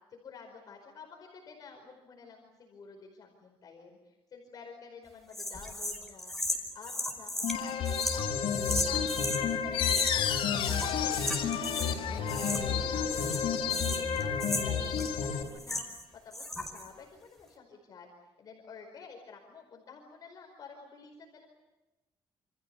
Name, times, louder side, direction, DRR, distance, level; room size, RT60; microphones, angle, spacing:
voice 1, 0.1-6.3 6.7-9.0 9.4-11.3 11.7-15.8 16.1-18.1 18.4-21.4, left 5 dB, 45° left, 2 dB, 4.8 m, -50 dB
sound 1, 5.3-9.4 9.8-10.3 10.6-12.0 12.3-12.8 13.1-16.0 16.3-16.9, left 1 dB, 5° left, 5.0 m, -36 dB
sound 2, 7.4-15.4, left 6 dB, 85° left, 4.1 m, -31 dB
sound 3, 9.7-15.0, left 9 dB, 65° left, 4.6 m, -35 dB
28.5 x 27.5 x 6.9 m, 1.0 s
cardioid pair, 170°, 9 cm